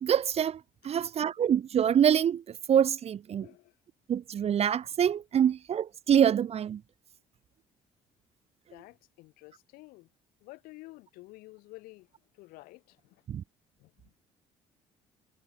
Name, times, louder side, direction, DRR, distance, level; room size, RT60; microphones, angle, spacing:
voice 1, 0.0-3.5 4.1-6.8 13.3-13.4, right 9 dB, 40° right, 0.6 m, -26 dB
voice 2, 3.4-3.8 8.7-10.1 10.4-12.1 12.3-13.2 13.8-14.1, left 21 dB, 70° left, 6.7 m, -51 dB
hypercardioid pair, 55°, 16 cm